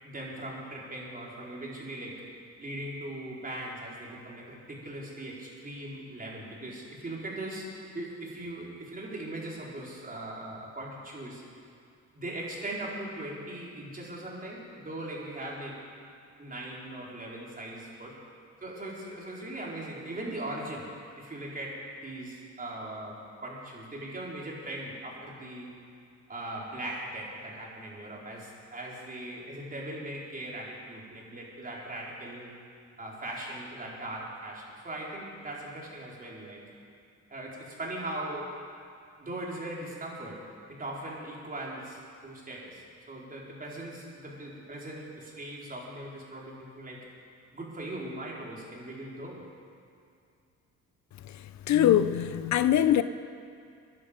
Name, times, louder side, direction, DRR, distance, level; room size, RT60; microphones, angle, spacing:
voice 1, 0.0-2.3 2.6-11.4 12.1-15.8 16.4-18.2 18.6-20.9 21.2-25.7 26.3-32.5 33.0-36.6 37.3-38.5 39.2-47.1 47.5-49.4, right 1 dB, 30° right, -4 dB, 4.3 m, -39 dB
voice 2, 51.7-53.0, left 11 dB, 65° left, 12 dB, 0.6 m, -22 dB
22.0 x 11.0 x 5.2 m, 2.4 s
cardioid pair, 90°, 30 cm